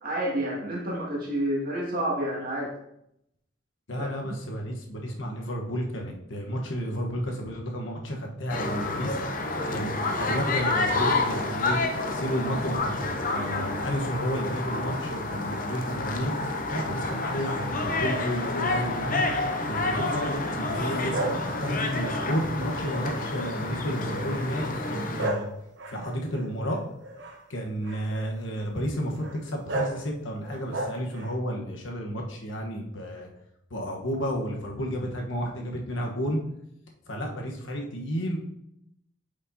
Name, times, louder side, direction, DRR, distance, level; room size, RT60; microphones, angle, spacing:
voice 1, 0.0-2.7 4.0-4.1, right 1 dB, 50° right, -3 dB, 2.0 m, -29 dB
voice 2, 3.9-9.2 9.7-9.9 10.2-11.8 12.1-16.3 16.7-19.3 19.7-21.2 21.6-25.5 25.9-26.8 27.5-33.3 33.7-36.4 37.1-38.4, equal, 80° left, 1 dB, 1.2 m, -31 dB
sound 1, 8.5-25.3, left 2 dB, 45° left, 0.7 m, -29 dB
sound 2, 21.1-23.7 24.2-24.5 25.1-27.4 27.8-28.3 29.2-29.4 29.7-30.0 30.4-31.3, right 2 dB, 70° right, 1.0 m, -34 dB
8.8 x 5.2 x 2.8 m, 0.78 s
head